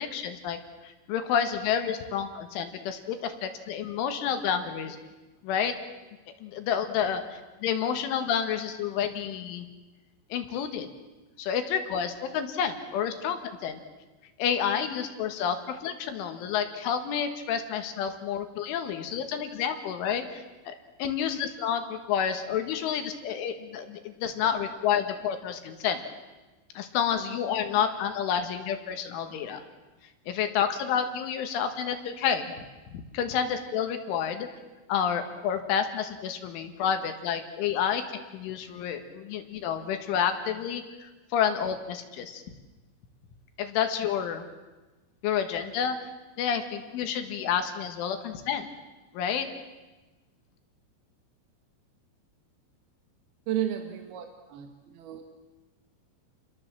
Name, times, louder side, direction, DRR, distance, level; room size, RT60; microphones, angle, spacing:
voice 1, 0.0-5.0 5.4-5.8 6.4-9.7 10.3-10.9 11.4-13.8 14.4-20.7 21.0-26.0 26.8-29.6 30.3-32.5 32.9-34.5 34.9-42.4 43.6-44.4 45.2-46.1 46.4-48.7 49.1-49.5, left 8 dB, 75° left, 7 dB, 4.1 m, -29 dB
voice 2, 53.5-55.2, right 11 dB, 65° right, 5 dB, 2.9 m, -33 dB
30.0 x 21.5 x 7.5 m, 1.2 s
omnidirectional pair, 5.7 m